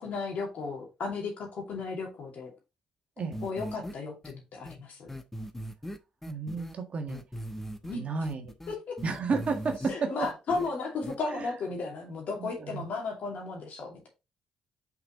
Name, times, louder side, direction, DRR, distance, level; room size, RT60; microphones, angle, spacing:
voice 1, 0.0-2.5 3.4-5.1 7.9-8.1 8.7-9.0 9.9-14.1, left 4 dB, 60° left, 1 dB, 2.5 m, -35 dB
sound 1, 3.3-3.9 4.2-4.3 4.7-4.8 5.1-6.7 7.1-7.9 8.2-9.9 10.2-10.7 11.0-11.2, equal, 10° left, 1.0 m, -39 dB
voice 2, 6.3-7.2 7.9-8.5 9.0-10.1 11.3-11.5 12.4-12.9, right 4 dB, 45° right, 5 dB, 1.6 m, -32 dB
5.7 x 5.4 x 3.0 m, 0.26 s
figure-of-eight pair, 40°, 3 cm